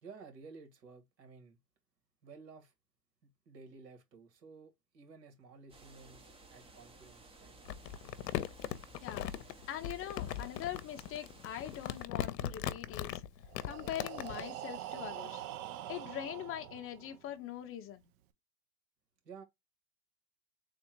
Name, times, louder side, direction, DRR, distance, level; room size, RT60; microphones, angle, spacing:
voice 1, 0.0-1.6 2.2-2.7 3.5-7.6 19.2-19.4, right 4 dB, 85° right, 2.0 m, -54 dB
sound 1, 5.7-12.1, right 2 dB, 10° right, 0.6 m, -57 dB
Crumpling crinkling, 7.7-14.5, left 11 dB, 85° left, 0.7 m, -39 dB
voice 2, 9.0-9.3 9.7-13.2 13.6-15.4 15.9-18.1, left 11 dB, 30° left, 0.7 m, -42 dB
Breathing, 13.4-17.3, right 12 dB, 60° right, 0.8 m, -44 dB
3.7 x 2.4 x 4.4 m
hypercardioid pair, 115°, 48 cm